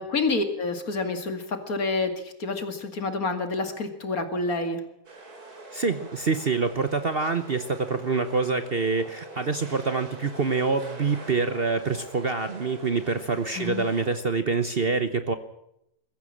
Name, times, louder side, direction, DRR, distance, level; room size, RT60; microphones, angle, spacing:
voice 1, 0.0-4.8 13.6-13.9, left 3 dB, 55° left, 7 dB, 2.7 m, -28 dB
sound 1, 5.0-14.1, right 2 dB, 60° right, 3.9 m, -44 dB
voice 2, 5.7-15.3, right 4 dB, 40° right, 10 dB, 1.1 m, -26 dB
22.0 x 14.5 x 8.7 m, 0.80 s
omnidirectional pair, 1.8 m